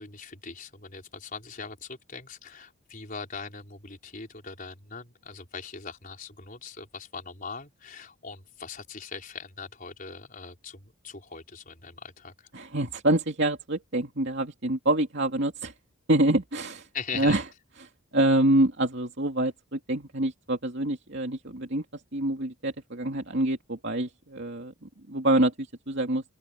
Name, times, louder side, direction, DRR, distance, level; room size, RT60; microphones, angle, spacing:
voice 1, 0.0-12.5 16.9-17.4, left 5 dB, 40° left, 4.7 m, -41 dB
voice 2, 12.5-15.7 16.1-16.9 17.1-17.4 17.8-26.3, right 1 dB, 55° right, 2.7 m, -26 dB
open air
head